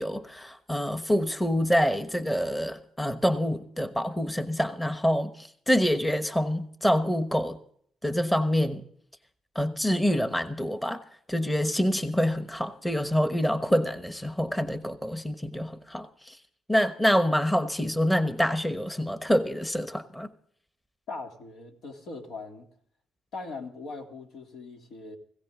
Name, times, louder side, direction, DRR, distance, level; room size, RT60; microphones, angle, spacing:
voice 1, 0.0-7.6 8.0-8.8 9.5-16.4 16.7-20.3, equal, 10° left, 1.2 m, -26 dB
voice 2, 21.1-22.7 23.3-25.2, left 3 dB, 80° left, 3.1 m, -40 dB
17.5 x 16.5 x 3.8 m
cardioid pair, 95°, 0 cm